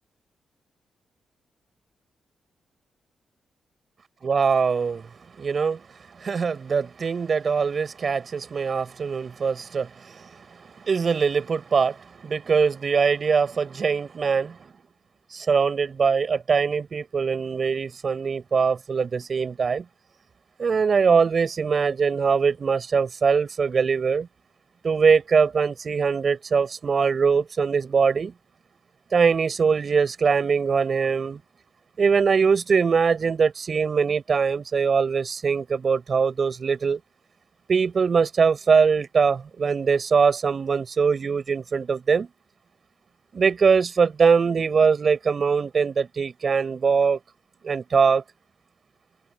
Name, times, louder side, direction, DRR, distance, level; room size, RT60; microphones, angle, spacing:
voice 1, 4.2-5.0 5.4-5.8 6.2-10.3 10.8-12.0 12.2-14.6 15.3-19.8 20.6-24.3 24.8-28.3 29.1-31.4 32.0-37.0 37.7-42.3 43.3-47.2 47.6-48.2, right 5 dB, 50° right, 6.8 m, -22 dB
cardioid pair, 85°, 0 cm